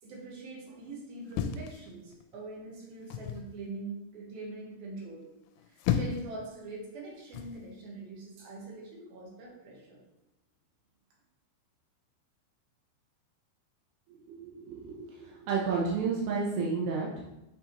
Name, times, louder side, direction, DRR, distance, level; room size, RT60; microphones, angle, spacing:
voice 1, 0.0-5.3 5.7-10.0, right 2 dB, 65° right, -3 dB, 2.8 m, -43 dB
sound 1, 1.3-2.4 3.1-3.5 5.5-6.4 7.3-7.6, left 8 dB, 90° left, 3.0 m, -33 dB
voice 2, 14.3-17.2, right 5 dB, 80° right, -4 dB, 2.3 m, -31 dB
8.7 x 4.6 x 3.0 m, 0.91 s
omnidirectional pair, 5.5 m